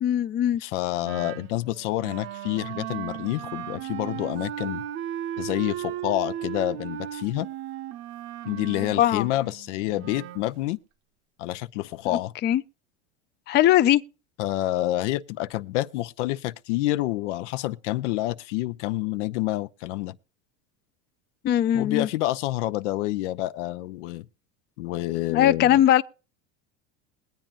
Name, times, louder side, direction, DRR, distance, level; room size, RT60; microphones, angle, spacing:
voice 1, 0.0-0.6 9.0-9.3 12.4-12.6 13.5-14.0 21.4-22.1 25.3-26.0, left 12 dB, 30° left, 0.4 m, -20 dB
voice 2, 0.6-4.8 5.4-7.5 8.4-10.8 11.4-12.3 14.4-20.2 21.7-24.3 24.8-25.8, left 16 dB, 80° left, 0.6 m, -28 dB
Wind instrument woodwind instrument, 1.0-10.5, right 11 dB, 55° right, 0.8 m, -36 dB
21.5 x 9.0 x 2.5 m
supercardioid pair, 115°, 35 cm